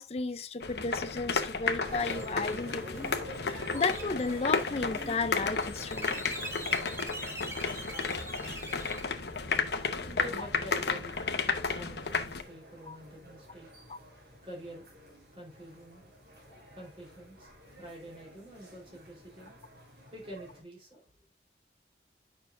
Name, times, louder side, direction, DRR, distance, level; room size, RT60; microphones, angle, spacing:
voice 1, 0.0-3.1 3.4-6.1 12.8-13.0 13.9-14.0, left 3 dB, 35° left, 0.5 m, -33 dB
sound 1, 0.6-12.4, left 4 dB, 70° left, 0.9 m, -33 dB
sound 2, 1.8-20.6, equal, 65° right, 3.9 m, -49 dB
sound 3, 2.0-9.0, right 1 dB, 15° right, 1.6 m, -44 dB
voice 2, 9.6-14.9 15.3-16.0 16.7-17.5 17.8-19.6 20.1-21.0, right 1 dB, 30° right, 3.9 m, -47 dB
9.2 x 6.0 x 2.6 m
head